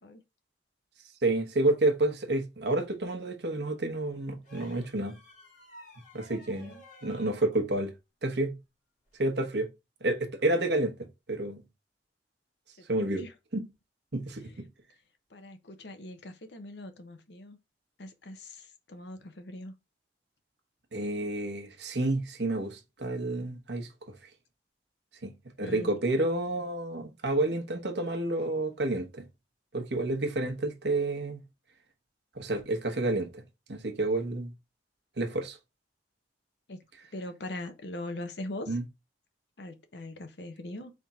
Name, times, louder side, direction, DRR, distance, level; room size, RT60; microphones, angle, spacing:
voice 1, 1.2-5.1 6.1-6.7 7.0-7.9 8.2-8.6 9.2-9.7 10.0-10.9 11.3-11.6 12.9-13.2 13.5-13.6 14.1-14.7 20.9-23.9 25.2-25.3 25.6-29.2 29.7-31.4 32.4-33.4 33.7-34.5 35.2-35.6 38.7-38.8, right 2 dB, 65° right, 1.1 m, -29 dB
sound 1, 4.4-7.4 9.1-9.2, left 1 dB, 45° left, 2.7 m, -52 dB
voice 2, 12.8-13.3 14.4-14.5 15.3-17.6 18.0-19.7 25.6-25.9 36.7-36.8 37.1-38.8 39.6-40.9, left 1 dB, 65° left, 0.8 m, -41 dB
4.2 x 3.6 x 3.6 m
head